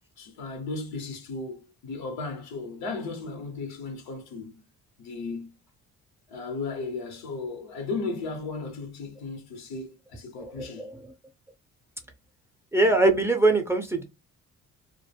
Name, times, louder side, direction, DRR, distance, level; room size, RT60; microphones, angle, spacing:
voice 1, 0.2-4.6 5.0-5.5 6.3-10.9, left 3 dB, 80° left, 0.9 m, -35 dB
voice 2, 10.4-11.0 12.7-14.0, right 2 dB, 5° right, 0.6 m, -22 dB
2.2 x 2.0 x 3.3 m
supercardioid pair, 60°, 37 cm